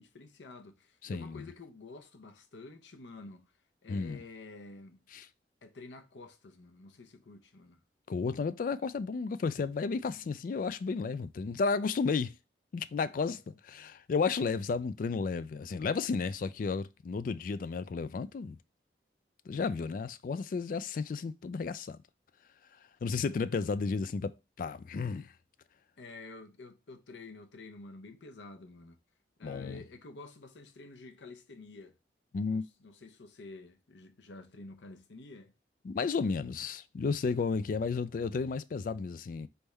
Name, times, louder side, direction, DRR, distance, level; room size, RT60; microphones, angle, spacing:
voice 1, 0.0-3.5 3.8-5.0 5.6-7.8 10.0-10.3 13.3-13.4 26.0-29.0 29.4-32.0 32.4-35.5, left 3 dB, 85° left, 0.7 m, -50 dB
voice 2, 1.0-1.5 3.9-4.2 5.1-5.3 8.1-12.4 12.7-18.6 19.5-22.0 23.0-25.3 29.4-29.8 32.3-32.6 35.8-39.5, left 4 dB, 50° left, 0.3 m, -33 dB
4.1 x 3.5 x 3.3 m
head